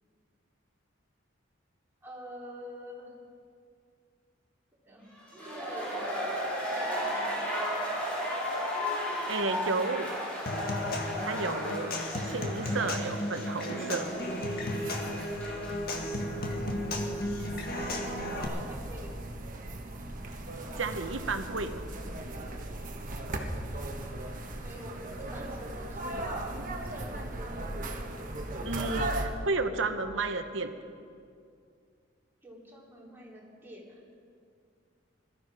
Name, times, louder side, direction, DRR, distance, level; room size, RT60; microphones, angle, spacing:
voice 1, 2.0-3.1 4.8-7.9 11.8-12.0 17.8-19.2 24.6-27.6 28.7-29.1 32.4-34.0, equal, 10° right, -5 dB, 3.5 m, -47 dB
sound 1, 5.2-16.0 16.3-16.4, equal, 10° left, 4.9 m, -35 dB
voice 2, 9.3-10.1 11.2-11.9 12.3-14.1 20.8-21.8 28.6-30.7, right 3 dB, 75° right, 7 dB, 1.1 m, -32 dB
Human voice / Acoustic guitar / Percussion, 10.5-18.4, left 1 dB, 50° left, 1.9 m, -34 dB
sound 2, 14.2-29.3, right 1 dB, 45° right, 1.3 m, -38 dB
21.5 x 13.5 x 5.0 m, 2.3 s
head